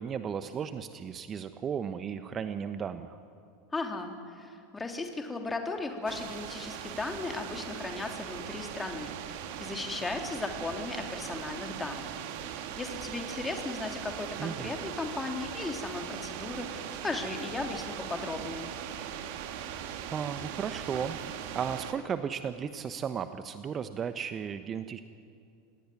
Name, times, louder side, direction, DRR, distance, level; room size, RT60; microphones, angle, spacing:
voice 1, 0.0-3.2 14.4-14.7 20.1-21.2 21.5-25.0, right 7 dB, 30° right, 11 dB, 1.1 m, -35 dB
voice 2, 3.7-12.2 12.8-18.7, left 3 dB, 15° left, 4 dB, 3.4 m, -36 dB
sound 1, 6.1-21.9, right 9 dB, 55° right, 2.1 m, -40 dB
27.5 x 19.0 x 9.5 m, 2.4 s
figure-of-eight pair, 80°, 0 cm